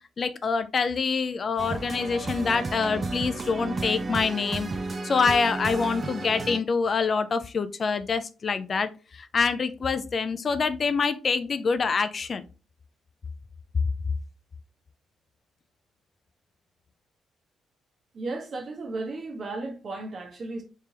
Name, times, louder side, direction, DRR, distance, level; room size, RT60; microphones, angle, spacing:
voice 1, 0.2-4.7 5.0-12.4, left 5 dB, 40° left, 0.3 m, -26 dB
sound 1, 1.6-6.6, right 3 dB, 35° right, 0.5 m, -33 dB
voice 2, 18.1-20.6, right 2 dB, 50° right, 1.1 m, -34 dB
3.3 x 3.3 x 2.8 m
cardioid pair, 90°, 0 cm